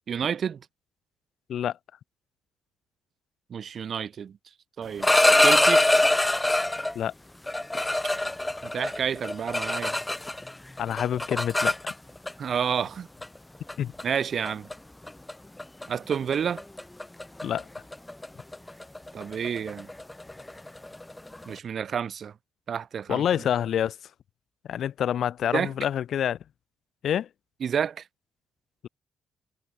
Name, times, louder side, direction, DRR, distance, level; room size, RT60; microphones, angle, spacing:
voice 1, 0.1-0.6 3.5-4.4 4.8-5.8 8.6-10.0 12.4-13.1 14.0-14.7 15.9-16.6 19.1-19.9 21.4-22.3 22.7-23.2 25.5-25.7 27.6-28.0, right 7 dB, 55° right, 1.4 m, -29 dB
sound 1, 4.8-6.9 7.5-10.5 10.8-12.3 13.2-13.4 13.7-14.0 14.5-14.7 15.1-15.3 15.6-15.9 16.1-21.5, left 1 dB, 10° left, 0.9 m, -24 dB
voice 2, 10.8-11.8 13.8-13.9 17.4-17.7 23.1-24.0 24.7-26.4 27.0-27.3, left 9 dB, 65° left, 0.7 m, -27 dB
cardioid pair, 90°, 0 cm